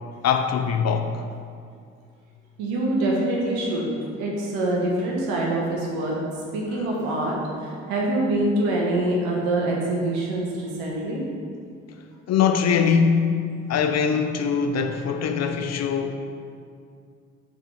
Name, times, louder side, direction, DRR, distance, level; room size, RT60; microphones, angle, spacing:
voice 1, 0.2-1.1 12.3-16.1, left 6 dB, 40° left, 0.6 m, -22 dB
voice 2, 2.6-3.9 4.2-6.2 6.5-11.2, right 1 dB, 70° right, 1.5 m, -25 dB
6.8 x 4.1 x 4.7 m
hypercardioid pair, 50°, 39 cm